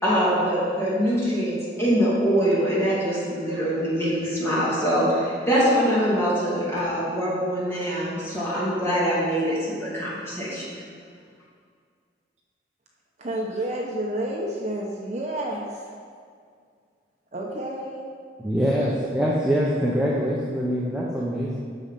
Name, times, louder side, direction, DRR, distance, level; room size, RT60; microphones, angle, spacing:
voice 1, 0.0-10.6, equal, 15° left, -8 dB, 2.7 m, -23 dB
voice 2, 13.2-15.9 17.3-18.1 18.8-18.9, right 1 dB, 40° right, -1 dB, 0.9 m, -30 dB
voice 3, 18.4-21.6, equal, 5° right, -5 dB, 0.9 m, -24 dB
8.7 x 6.4 x 5.7 m, 2.1 s
head